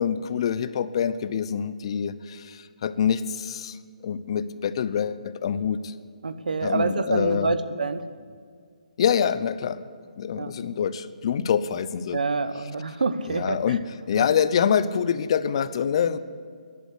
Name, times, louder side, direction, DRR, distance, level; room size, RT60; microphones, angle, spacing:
voice 1, 0.0-3.8 4.0-5.9 6.6-7.5 9.0-9.8 10.2-12.2 13.3-16.2, left 8 dB, 45° left, 14 dB, 0.7 m, -25 dB
voice 2, 6.2-8.1 10.4-10.5 12.1-13.8 14.2-14.3, right 4 dB, 85° right, 12 dB, 1.0 m, -27 dB
13.0 x 11.0 x 8.5 m, 2.1 s
hypercardioid pair, 155°, 4 cm